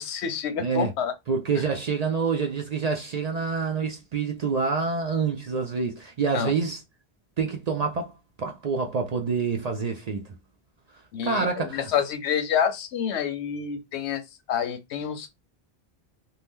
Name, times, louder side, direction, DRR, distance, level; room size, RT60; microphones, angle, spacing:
voice 1, 0.0-1.1 6.3-6.5 11.1-14.2 14.5-15.3, left 8 dB, 90° left, 0.9 m, -28 dB
voice 2, 0.6-0.9 1.3-6.8 7.4-8.1 8.4-10.3 11.2-11.9, right 5 dB, 60° right, 0.4 m, -27 dB
2.8 x 2.2 x 3.4 m
omnidirectional pair, 1.1 m